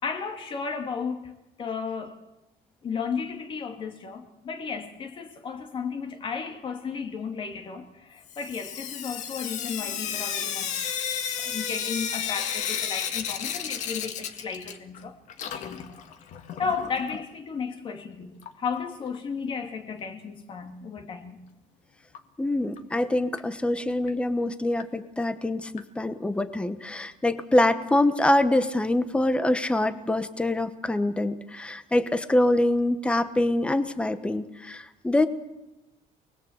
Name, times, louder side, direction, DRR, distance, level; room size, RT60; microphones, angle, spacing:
voice 1, 0.0-2.2 2.8-10.9 11.4-15.2 15.5-15.9 16.2-21.5, left 5 dB, 35° left, 2.5 m, -34 dB
Sink (filling or washing) / Drip, 8.3-15.0 15.3-17.2 18.4-18.5 18.8-18.9 19.1-19.2 22.1-22.2 22.8-22.9 23.4-23.5 24.1-24.2 24.8-24.9 25.8-25.9, left 8 dB, 55° left, 1.9 m, -33 dB
voice 2, 22.4-35.3, left 1 dB, 5° left, 1.1 m, -25 dB
28.0 x 21.0 x 8.1 m
cardioid pair, 165°, 15 cm